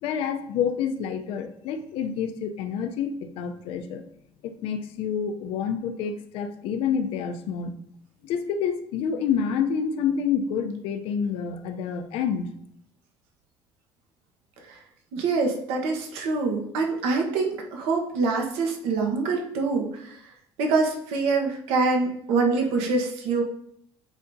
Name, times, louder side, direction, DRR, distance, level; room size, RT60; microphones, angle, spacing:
voice 1, 0.0-4.0 4.4-7.8 8.2-12.5, left 7 dB, 65° left, 8 dB, 0.7 m, -28 dB
voice 2, 15.1-20.2 20.6-23.4, right 4 dB, 80° right, 1 dB, 1.3 m, -25 dB
8.2 x 4.9 x 2.8 m, 0.71 s
cardioid pair, 160°, 10 cm